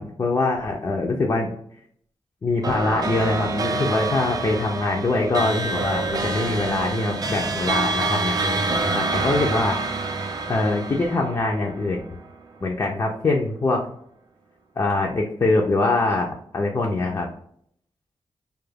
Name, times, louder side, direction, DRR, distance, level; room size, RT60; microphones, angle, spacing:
voice 1, 0.0-1.6 2.4-10.0 10.5-12.2 12.6-13.9 14.8-17.3, left 2 dB, 35° left, 0 dB, 0.4 m, -23 dB
sound 1, 2.6-12.3, right 3 dB, 40° right, 0.4 m, -27 dB
2.3 x 2.2 x 3.2 m, 0.66 s
wide cardioid pair, 100°, 10 cm